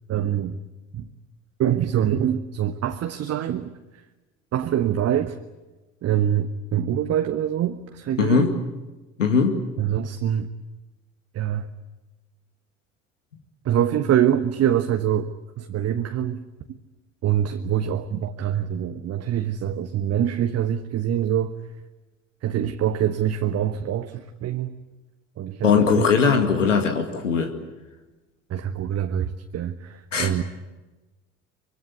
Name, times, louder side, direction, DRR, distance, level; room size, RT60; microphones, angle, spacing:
voice 1, 0.1-0.6 0.9-1.1 1.6-3.7 4.5-5.4 6.0-8.5 9.8-10.5 11.3-11.7 13.6-16.4 17.2-21.6 22.4-24.8 25.4-26.1 28.5-30.4, right 10 dB, 40° right, 7 dB, 1.3 m, -24 dB
voice 2, 8.2-8.5 9.2-9.6 25.6-27.5 30.1-30.3, left 5 dB, 80° left, 5 dB, 2.2 m, -20 dB
24.5 x 23.5 x 8.2 m, 1.1 s
figure-of-eight pair, 55°, 37 cm